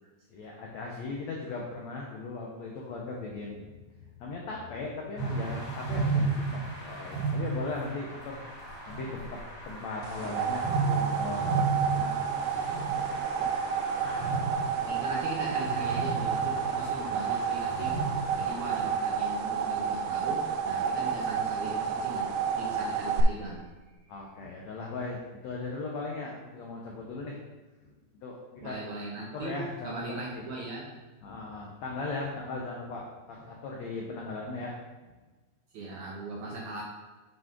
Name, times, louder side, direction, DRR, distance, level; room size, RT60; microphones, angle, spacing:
voice 1, 0.3-3.7 4.2-8.4 8.9-9.4 9.7-13.4 14.0-14.5 24.1-27.4 28.2-28.8 29.2-30.5 31.2-34.8, left 3 dB, 90° left, -1 dB, 1.5 m, -38 dB
sound 1, 5.2-19.0, right 3 dB, 50° left, 2.6 m, -34 dB
sound 2, 10.0-23.2, right 7 dB, 90° right, 2.6 m, -30 dB
voice 2, 14.9-18.0 18.3-23.7 28.6-29.6 29.8-30.9 35.7-36.8, right 2 dB, 65° right, -3 dB, 1.8 m, -39 dB
8.6 x 5.4 x 3.7 m, 1.2 s
omnidirectional pair, 4.4 m